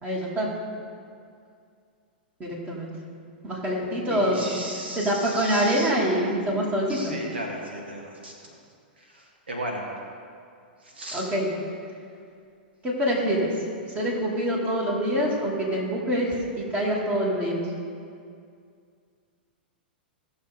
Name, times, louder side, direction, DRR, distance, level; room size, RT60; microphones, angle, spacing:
voice 1, 0.0-0.5 2.4-2.9 3.4-4.4 4.9-7.1 11.1-11.5 12.8-13.5 13.9-17.6, equal, 25° right, -4 dB, 2.9 m, -25 dB
voice 2, 4.1-8.3 9.0-9.9 10.8-11.3, right 1 dB, 90° right, 0 dB, 1.6 m, -36 dB
16.5 x 6.5 x 3.7 m, 2.3 s
hypercardioid pair, 110°, 6 cm